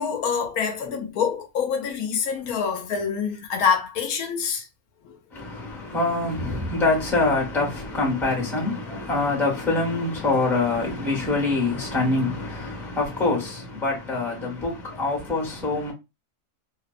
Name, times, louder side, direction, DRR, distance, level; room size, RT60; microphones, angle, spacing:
voice 1, 0.0-4.7 5.0-5.2, left 6 dB, 75° left, 1.0 m, -26 dB
voice 2, 5.3-15.9, left 3 dB, ahead, 0.7 m, -25 dB
2.7 x 2.0 x 2.4 m
omnidirectional pair, 1.6 m